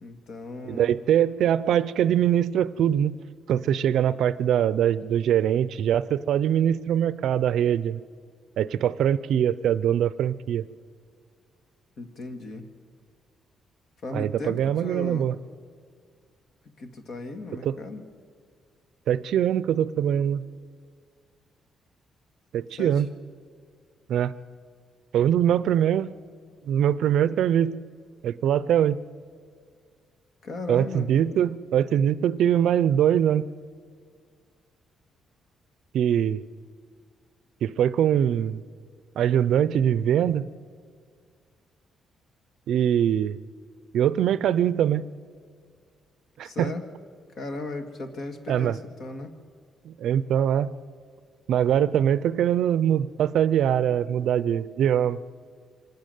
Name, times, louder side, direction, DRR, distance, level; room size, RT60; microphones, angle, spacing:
voice 1, 0.0-0.9 12.0-12.7 14.0-15.3 16.8-18.0 22.8-23.0 30.4-31.4 46.4-46.8 47.4-49.3, left 2 dB, 45° left, 6 dB, 1.9 m, -36 dB
voice 2, 0.7-3.2 3.5-8.0 8.6-10.7 14.1-15.3 17.6-17.7 19.1-20.4 22.5-23.1 24.1-24.3 25.1-26.1 26.7-27.8 28.2-29.0 30.7-33.5 35.9-36.4 37.6-38.6 39.2-40.5 42.7-43.4 43.9-45.1 46.4-46.7 48.5-48.8 49.8-50.7 51.5-55.2, right 10 dB, 65° right, 16 dB, 0.5 m, -23 dB
25.5 x 12.0 x 9.2 m, 2.1 s
cardioid pair, 165°, 0 cm